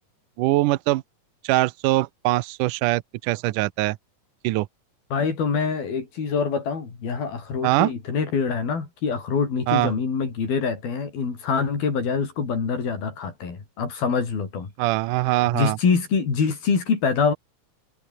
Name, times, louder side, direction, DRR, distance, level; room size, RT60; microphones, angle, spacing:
voice 1, 0.4-1.0 1.4-4.0 4.4-4.7 7.6-7.9 9.7-9.9 14.8-15.8, right 19 dB, 75° right, 2.1 m, -22 dB
voice 2, 5.1-14.7 15.3-17.3, left 5 dB, 85° left, 7.2 m, -25 dB
omnidirectional pair, 4.1 m